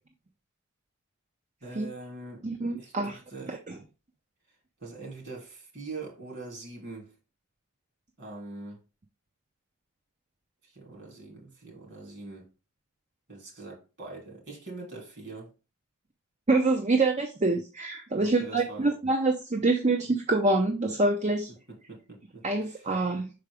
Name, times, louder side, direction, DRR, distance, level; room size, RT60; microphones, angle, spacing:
voice 1, 1.6-2.5 2.8-3.6 4.8-7.1 8.2-8.8 10.6-12.5 13.3-15.5 18.1-18.9 21.5-22.9, right 3 dB, 50° right, 2.9 m, -43 dB
voice 2, 2.4-3.2 3.5-3.8 16.5-21.5 22.4-23.3, right 2 dB, 30° right, 0.6 m, -26 dB
5.7 x 4.9 x 3.4 m
head